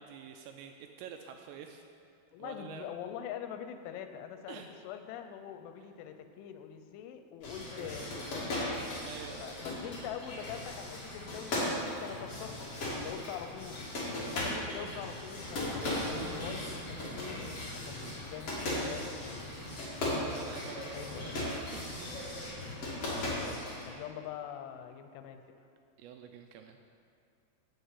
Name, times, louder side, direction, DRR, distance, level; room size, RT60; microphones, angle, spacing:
voice 1, 0.0-1.8 2.4-2.9 4.5-4.7 7.7-8.2 9.0-9.4 14.8-15.0 19.5-19.8 20.3-22.2 23.2-23.5 26.0-26.8, right 8 dB, 85° right, 5 dB, 2.6 m, -48 dB
voice 2, 2.3-8.7 9.4-13.8 14.3-19.5 20.9-21.4 23.1-25.4, left 9 dB, 85° left, 8 dB, 3.1 m, -44 dB
sound 1, 7.4-23.9, left 1 dB, 40° left, 2.6 m, -37 dB
sound 2, 13.8-19.8, left 2 dB, 60° left, 3.1 m, -56 dB
8.0 x 7.9 x 8.1 m, 2.5 s
omnidirectional pair, 5.4 m